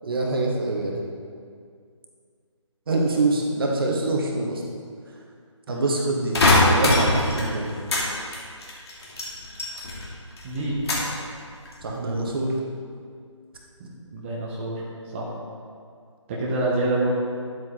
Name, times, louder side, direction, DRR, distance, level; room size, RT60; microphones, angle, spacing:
voice 1, 0.0-1.0 2.9-4.6 5.7-7.7 11.8-12.6, right 2 dB, 45° right, -1 dB, 1.5 m, -25 dB
sound 1, 6.3-8.1 8.3-10.1 10.4-11.2 11.7-12.1, left 2 dB, 55° left, 2.8 m, -21 dB
voice 2, 10.4-10.8 13.8-14.8 15.1-15.3 16.3-17.1, right 2 dB, 20° right, -5 dB, 1.3 m, -27 dB
11.0 x 8.0 x 3.8 m, 2.2 s
figure-of-eight pair, 155°, 16 cm